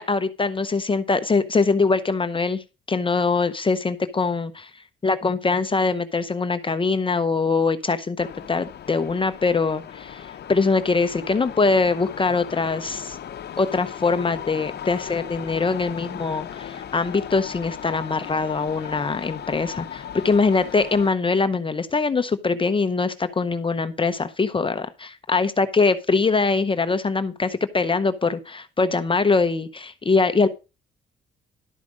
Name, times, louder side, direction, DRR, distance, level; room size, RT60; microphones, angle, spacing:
voice 1, 0.0-2.6 2.9-4.7 5.0-13.2 13.6-30.5, left 4 dB, 25° left, 10 dB, 0.8 m, -23 dB
sound 1, 8.2-21.1, left 9 dB, 55° left, 0.9 m, -37 dB
12.0 x 5.0 x 6.2 m, 0.30 s
cardioid pair, 90°, 20 cm